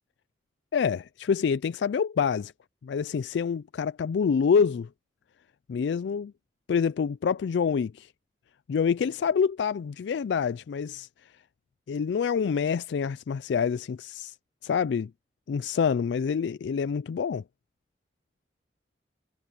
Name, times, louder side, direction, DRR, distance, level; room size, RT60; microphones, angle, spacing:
voice 1, 0.7-2.5 2.8-4.9 5.7-6.3 6.7-8.1 8.7-11.1 11.9-14.3 14.6-15.1 15.5-17.4, left 6 dB, 70° left, 0.3 m, -26 dB
head